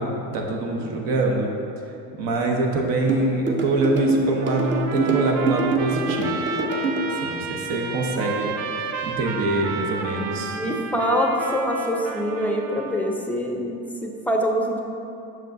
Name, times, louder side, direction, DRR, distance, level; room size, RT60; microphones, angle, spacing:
voice 1, 0.0-1.5 2.1-6.4 7.1-10.6, right 2 dB, 65° right, 1 dB, 1.0 m, -25 dB
sound 1, 3.1-7.1, right 3 dB, 30° right, 0.7 m, -24 dB
Trumpet, 4.4-13.2, right 5 dB, 90° right, 0.6 m, -32 dB
voice 2, 10.1-14.8, equal, 5° left, 1 dB, 0.5 m, -25 dB
7.5 x 6.1 x 2.6 m, 2.9 s
cardioid pair, 115°, 37 cm